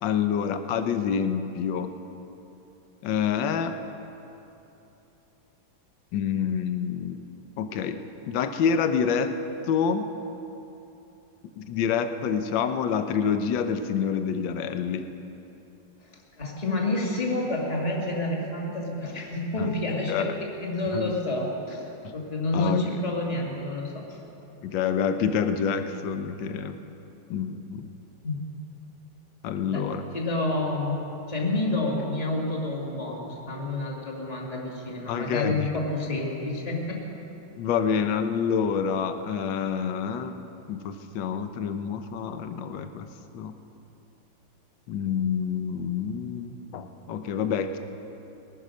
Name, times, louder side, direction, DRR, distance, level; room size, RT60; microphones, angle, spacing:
voice 1, 0.0-1.9 3.0-3.8 6.1-7.2 7.6-8.0 8.3-9.3 9.7-10.1 11.6-15.0 19.6-19.7 20.1-20.3 20.9-21.1 22.0-22.1 22.5-22.8 24.6-26.8 27.3-27.9 29.4-30.0 35.1-35.7 37.6-40.3 40.7-43.1 43.3-43.5 44.9-47.8, left 7 dB, 70° left, 9 dB, 1.4 m, -27 dB
voice 2, 16.4-24.2 28.2-28.5 29.7-29.8 30.1-37.0, left 2 dB, 20° left, -2 dB, 1.9 m, -29 dB
20.0 x 9.5 x 6.4 m, 2.9 s
omnidirectional pair, 2.3 m